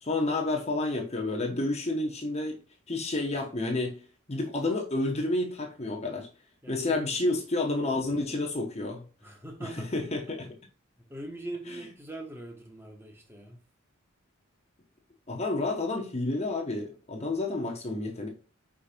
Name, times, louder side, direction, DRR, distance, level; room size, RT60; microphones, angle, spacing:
voice 1, 0.0-2.6 2.9-4.0 4.3-6.3 6.7-9.0 9.6-10.5 15.3-18.3, left 2 dB, 30° left, 1.0 m, -30 dB
voice 2, 6.6-7.4 9.2-9.9 10.4-10.5 11.1-13.6, right 1 dB, 10° right, 1.3 m, -42 dB
5.1 x 4.7 x 4.4 m
head